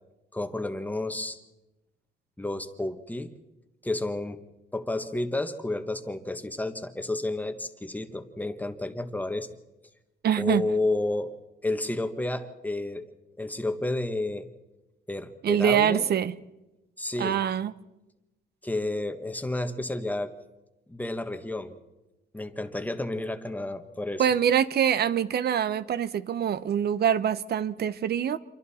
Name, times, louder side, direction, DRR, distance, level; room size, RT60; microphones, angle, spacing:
voice 1, 0.3-1.4 2.4-3.3 3.8-4.4 4.7-9.5 10.4-11.3 11.6-13.1 13.4-14.5 15.1-16.0 17.0-17.4 18.6-20.3 20.9-21.8 22.3-24.3, left 2 dB, 10° left, 1.3 m, -31 dB
voice 2, 10.2-10.7 15.4-16.4 17.2-17.7 24.2-28.4, right 9 dB, 60° right, 0.8 m, -24 dB
27.5 x 23.5 x 4.3 m
cardioid pair, 130°, 19 cm